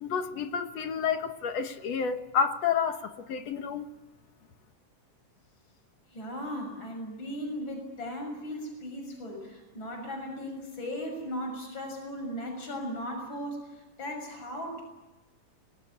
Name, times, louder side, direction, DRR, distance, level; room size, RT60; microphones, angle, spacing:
voice 1, 0.0-3.9, left 6 dB, 60° left, 2.2 m, -30 dB
voice 2, 6.1-14.8, equal, 35° left, 7.3 m, -37 dB
26.0 x 21.0 x 9.8 m
omnidirectional pair, 3.7 m